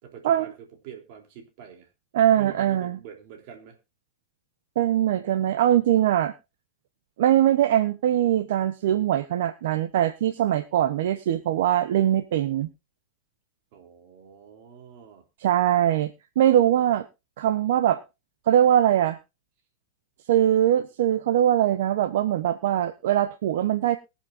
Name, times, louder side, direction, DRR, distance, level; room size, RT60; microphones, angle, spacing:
voice 1, 0.0-0.5 0.8-1.9 2.3-3.8 13.7-15.2, right 9 dB, 50° right, 3 dB, 3.3 m, -44 dB
voice 2, 2.1-3.0 4.8-6.3 7.2-12.7 15.4-16.1 16.4-17.0 17.4-18.0 18.5-19.2 20.3-24.0, right 11 dB, 70° right, 11 dB, 0.9 m, -22 dB
22.0 x 7.4 x 2.6 m, 0.26 s
supercardioid pair, 145°, 0 cm